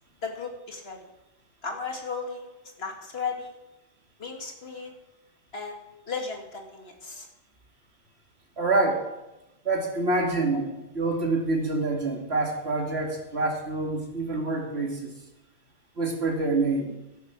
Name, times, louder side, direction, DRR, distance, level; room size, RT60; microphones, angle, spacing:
voice 1, 0.2-1.0 1.6-3.6 4.2-4.9 5.5-5.8 6.1-7.3, left 4 dB, 60° left, 3 dB, 2.4 m, -35 dB
voice 2, 8.6-9.0 9.6-15.1 16.0-16.9, right 3 dB, 65° right, 0 dB, 2.8 m, -26 dB
12.5 x 11.0 x 6.1 m, 0.94 s
omnidirectional pair, 1.2 m